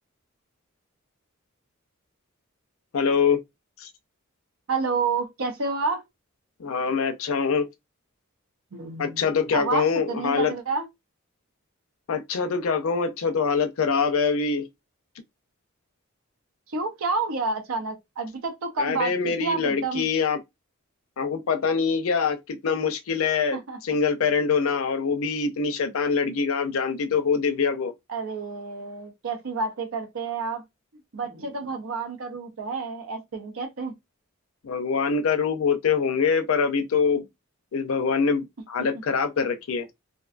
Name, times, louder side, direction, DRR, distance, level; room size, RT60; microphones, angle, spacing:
voice 1, 2.9-3.4 3.8-3.9 6.6-7.7 9.0-10.5 12.1-14.7 18.8-20.4 21.2-27.9 34.6-37.2 37.7-39.9, left 5 dB, 75° left, 0.5 m, -24 dB
voice 2, 4.7-6.0 8.7-9.2 9.5-10.9 16.7-20.1 23.5-23.8 28.1-30.6 31.1-33.9, right 4 dB, 75° right, 0.6 m, -29 dB
2.5 x 2.2 x 2.4 m
head